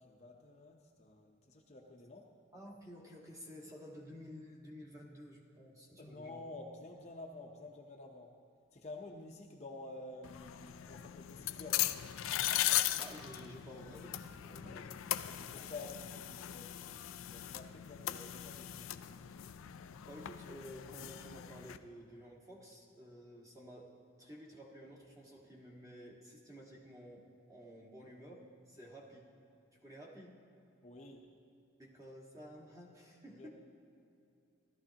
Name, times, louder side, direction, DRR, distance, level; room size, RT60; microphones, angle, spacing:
voice 1, 0.0-2.2 6.0-8.3 8.7-11.9 14.5-14.9 15.2-19.2 30.8-31.3 33.4-33.5, left 2 dB, 35° left, 1 dB, 0.7 m, -50 dB
voice 2, 2.5-6.4 13.0-14.9 20.1-23.9 24.2-29.3 29.8-30.4 31.8-33.5, equal, 15° right, -2 dB, 1.6 m, -52 dB
sound 1, 10.2-21.8, left 13 dB, 85° left, 0.4 m, -39 dB
16.0 x 12.5 x 2.9 m, 2.7 s
head